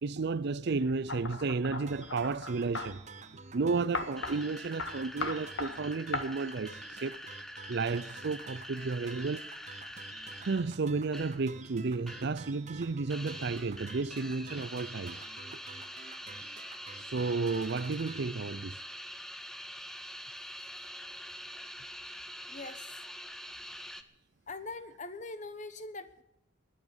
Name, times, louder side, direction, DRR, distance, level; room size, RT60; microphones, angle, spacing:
voice 1, 0.0-3.0 3.5-7.2 7.7-9.5 10.4-15.2 17.1-18.8, right 4 dB, 55° right, 0.5 m, -32 dB
sound 1, 1.1-2.9 3.9-4.4 4.8-4.9 5.2-5.7 6.1-6.2, left 3 dB, 65° left, 1.7 m, -36 dB
sound 2, 1.9-18.2, right 4 dB, 35° right, 1.1 m, -50 dB
sound 3, 4.2-11.5 11.8-12.4 12.7-24.0, equal, ahead, 0.7 m, -45 dB
voice 2, 22.5-22.9 24.5-26.2, left 3 dB, 35° left, 1.0 m, -42 dB
21.0 x 8.5 x 7.1 m
head